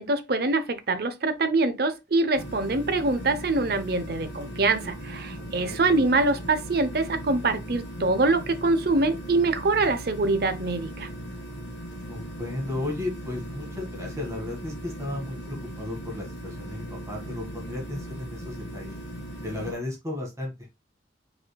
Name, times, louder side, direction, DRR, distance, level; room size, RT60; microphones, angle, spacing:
voice 1, 0.0-11.1, right 3 dB, 55° right, 0.7 m, -24 dB
sound 1, 2.3-19.7, equal, 65° left, 1.9 m, -38 dB
voice 2, 12.1-19.0 19.4-20.5, left 2 dB, 15° right, 1.8 m, -34 dB
5.5 x 4.3 x 2.2 m
head